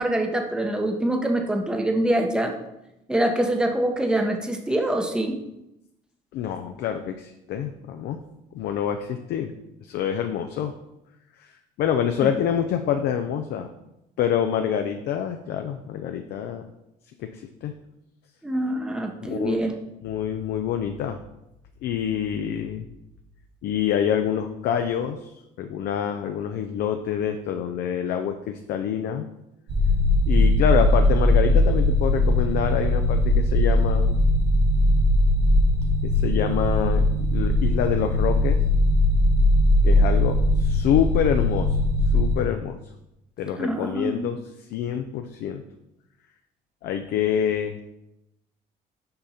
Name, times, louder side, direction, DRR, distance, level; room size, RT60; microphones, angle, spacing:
voice 1, 0.0-2.5 3.1-5.4 12.2-12.3 18.4-19.7 43.6-44.3, right 1 dB, 5° right, 3 dB, 0.8 m, -24 dB
voice 2, 6.3-8.2 8.5-9.5 9.8-10.7 11.4-11.5 11.8-13.7 14.2-16.7 17.2-17.7 19.2-19.6 20.0-21.2 21.8-22.9 23.6-29.3 30.3-34.1 36.0-38.6 39.8-41.8 42.1-42.8 43.4-45.6 46.8-48.0, left 9 dB, 75° left, 6 dB, 0.5 m, -26 dB
sound 1, 29.7-42.4, left 1 dB, 80° right, 2.4 m, -20 dB
5.8 x 5.1 x 4.2 m, 0.89 s
cardioid pair, 110°, 17 cm